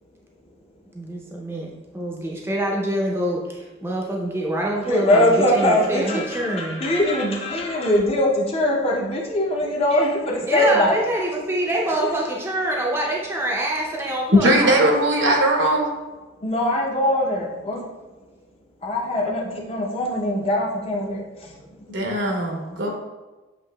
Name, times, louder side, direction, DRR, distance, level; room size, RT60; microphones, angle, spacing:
voice 1, 0.9-6.8 10.5-14.9, right 1 dB, 10° right, 0.5 m, -25 dB
voice 2, 4.9-11.0 16.4-17.9 18.8-21.7, left 1 dB, 30° left, 0.6 m, -22 dB
voice 3, 14.3-15.9 21.9-22.9, right 1 dB, 70° right, 0.9 m, -19 dB
7.4 x 2.8 x 2.2 m
head